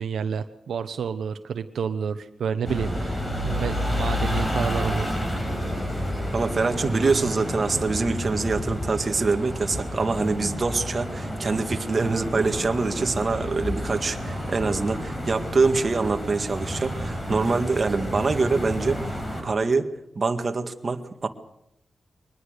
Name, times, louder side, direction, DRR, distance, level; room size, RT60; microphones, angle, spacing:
voice 1, 0.0-5.0, right 7 dB, 85° right, 9 dB, 0.9 m, -29 dB
sound 1, 2.6-19.4, equal, 20° left, 5.6 m, -30 dB
voice 2, 6.3-19.0 19.4-19.9 20.2-21.3, right 4 dB, 40° right, 6 dB, 1.9 m, -25 dB
23.0 x 19.5 x 6.7 m, 0.83 s
wide cardioid pair, 100°, 0 cm